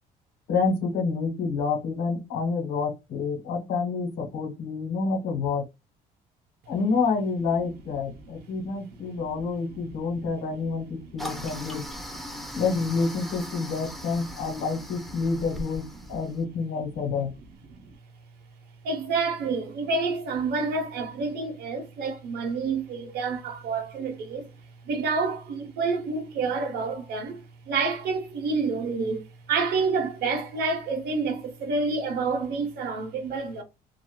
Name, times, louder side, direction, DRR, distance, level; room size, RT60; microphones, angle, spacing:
voice 1, 0.5-5.7 6.7-11.9 12.5-17.3, left 4 dB, 80° left, 1.1 m, -28 dB
voice 2, 9.2-10.3 10.7-11.5 11.8-12.5 14.2-14.3 15.9-16.3 17.0-17.9 18.8-24.5 24.8-33.6, right 4 dB, 70° right, 0.8 m, -29 dB
Toilet flush, 11.2-16.4, equal, ahead, 0.5 m, -39 dB
2.6 x 2.4 x 2.2 m
cardioid pair, 110°, 17 cm